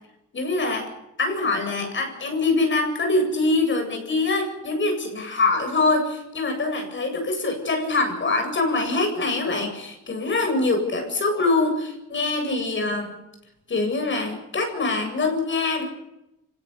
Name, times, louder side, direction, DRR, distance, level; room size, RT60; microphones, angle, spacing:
voice 1, 0.3-13.2 13.7-15.8, left 3 dB, 40° left, 4 dB, 8.0 m, -24 dB
27.0 x 18.0 x 7.0 m, 0.89 s
cardioid pair, 90°, 30 cm